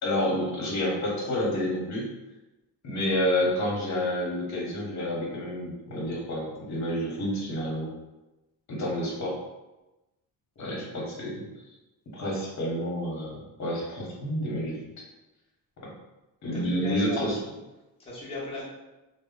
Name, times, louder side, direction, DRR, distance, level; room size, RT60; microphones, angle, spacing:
voice 1, 0.0-2.1 2.8-7.9 8.7-9.4 10.6-11.4 12.1-14.8 16.4-17.4, left 1 dB, 50° left, -3 dB, 0.9 m, -29 dB
voice 2, 16.5-17.6 18.0-18.6, left 1 dB, 15° left, -8 dB, 0.8 m, -36 dB
2.1 x 2.0 x 3.6 m, 1.0 s
cardioid pair, 135°, 36 cm